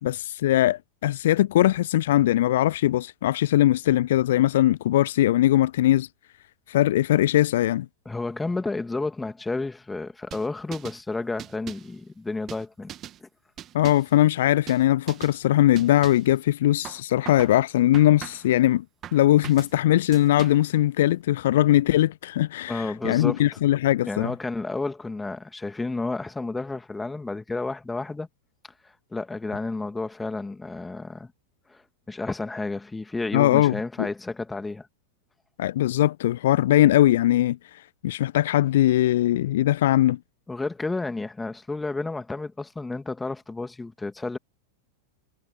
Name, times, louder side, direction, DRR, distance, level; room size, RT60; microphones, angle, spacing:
voice 1, 0.0-6.1 6.7-7.9 13.7-18.8 19.1-24.3 33.3-34.1 35.6-40.2, left 13 dB, 55° left, 0.7 m, -21 dB
voice 2, 8.0-12.9 13.2-13.3 22.7-23.6 24.0-28.3 28.8-31.3 31.7-34.9 40.5-44.4, left 3 dB, 10° left, 2.9 m, -31 dB
sound 1, 10.3-11.0 11.4-11.9 12.5-13.2 13.6-14.2 14.7-14.8 15.1-15.4 15.8-16.3 16.8-17.6 17.9-18.5 19.0-19.7 20.1-20.7, right 11 dB, 30° right, 1.9 m, -41 dB
figure-of-eight pair, 90°, 0 cm